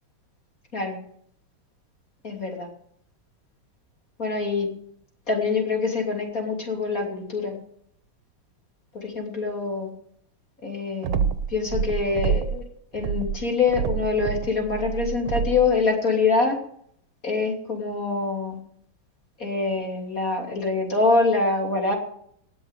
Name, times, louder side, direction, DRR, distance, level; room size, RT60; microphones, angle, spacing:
voice 1, 2.2-2.7 4.2-4.7 5.3-7.6 8.9-9.9 10.6-12.6 12.9-16.6 17.2-18.6 19.4-22.0, left 4 dB, 40° left, 1 dB, 3.4 m, -25 dB
sound 1, 11.0-12.6 13.0-15.7, right 7 dB, 80° right, 1.7 m, -27 dB
18.5 x 7.0 x 8.3 m, 0.65 s
omnidirectional pair, 2.2 m